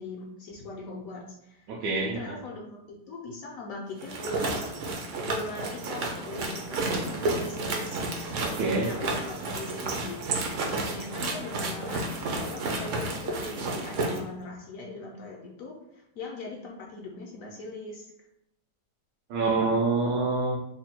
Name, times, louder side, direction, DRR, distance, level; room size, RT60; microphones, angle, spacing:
voice 1, 0.0-4.7 5.2-8.0 8.8-10.2 10.6-18.1, left 3 dB, 70° left, -2 dB, 0.9 m, -40 dB
voice 2, 1.7-2.3 8.5-8.9 19.3-20.6, right 3 dB, 90° right, -3 dB, 1.3 m, -26 dB
sound 1, 4.0-14.2, right 2 dB, 65° right, 0.7 m, -31 dB
3.4 x 2.2 x 4.2 m, 0.81 s
omnidirectional pair, 1.8 m